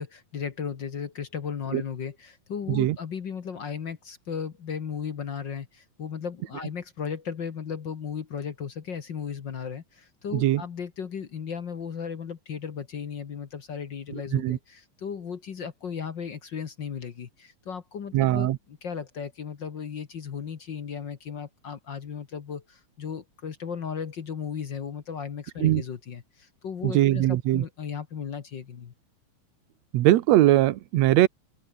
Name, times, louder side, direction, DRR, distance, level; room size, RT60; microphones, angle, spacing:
voice 1, 0.0-28.9, left 7 dB, 45° left, 1.8 m, -36 dB
voice 2, 18.1-18.6 25.6-25.8 26.8-27.6 29.9-31.3, right 14 dB, 70° right, 2.0 m, -21 dB
open air
omnidirectional pair, 3.4 m